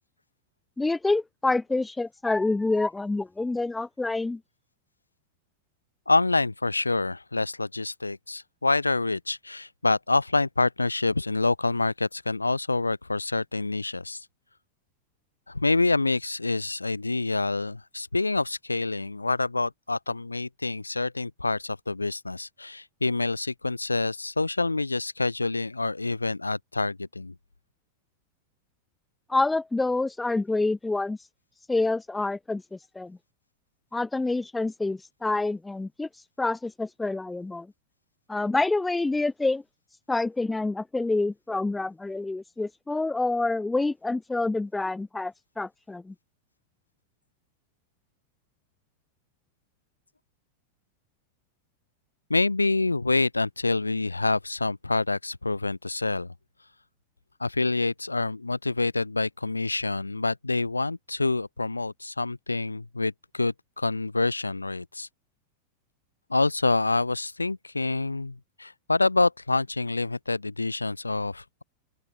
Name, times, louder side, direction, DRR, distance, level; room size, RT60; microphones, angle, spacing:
voice 1, 0.8-4.4 29.3-31.2 31.7-33.2 33.9-36.1 36.4-37.7 38.3-39.6 40.1-46.1, left 2 dB, 10° left, 0.8 m, -27 dB
voice 2, 6.1-14.3 15.5-27.3 52.3-56.3 57.4-65.1 66.3-71.6, left 3 dB, 80° left, 3.8 m, -27 dB
open air
figure-of-eight pair, 90°, 0 cm